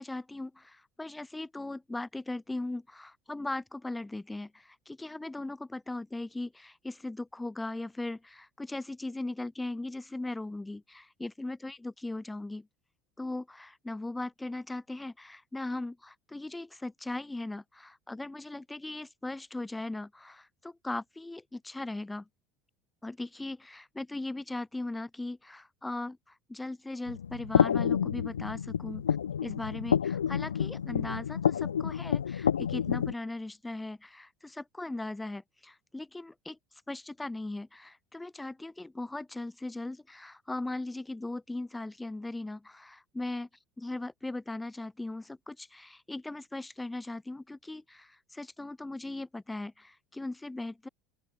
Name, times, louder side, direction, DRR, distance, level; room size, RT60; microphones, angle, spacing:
voice 1, 0.0-12.7 13.2-22.3 23.0-29.1 29.4-36.6 36.9-43.5 43.8-50.9, left 2 dB, 10° left, 2.1 m, -38 dB
sound 1, 27.1-33.1, left 8 dB, 80° left, 1.4 m, -29 dB
open air
figure-of-eight pair, 65°, 0 cm